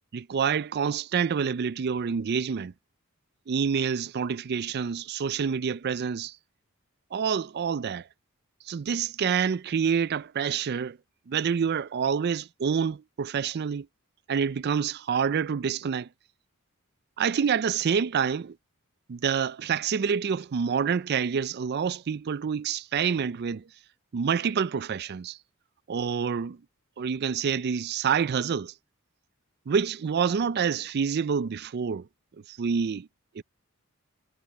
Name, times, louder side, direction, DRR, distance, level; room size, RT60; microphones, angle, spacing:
voice 1, 0.1-2.7 3.5-6.4 7.1-8.1 8.7-11.0 11.3-13.9 14.3-16.1 17.2-18.6 19.1-23.6 24.1-25.4 25.9-26.6 27.0-28.7 29.7-32.1 32.5-33.1 33.3-33.4, right 6 dB, 50° right, 0.4 m, -27 dB
head